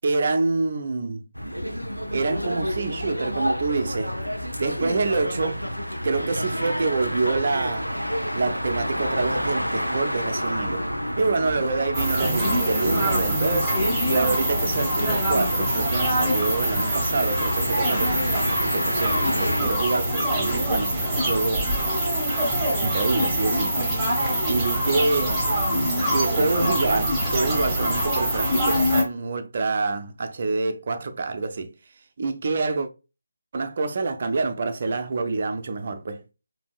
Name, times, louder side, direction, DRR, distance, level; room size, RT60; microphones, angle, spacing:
voice 1, 0.0-1.2 2.1-4.1 4.6-5.6 6.0-7.9 8.3-10.9 11.2-13.7 14.1-21.7 22.8-23.9 24.5-25.5 26.1-31.7 32.2-32.9 33.5-36.2, right 3 dB, 40° right, 0.6 m, -26 dB
sound 1, 1.3-19.6, equal, 90° left, 0.7 m, -29 dB
sound 2, 11.9-29.0, right 1 dB, 5° right, 1.7 m, -24 dB
5.3 x 2.7 x 2.4 m
figure-of-eight pair, 150°, 0 cm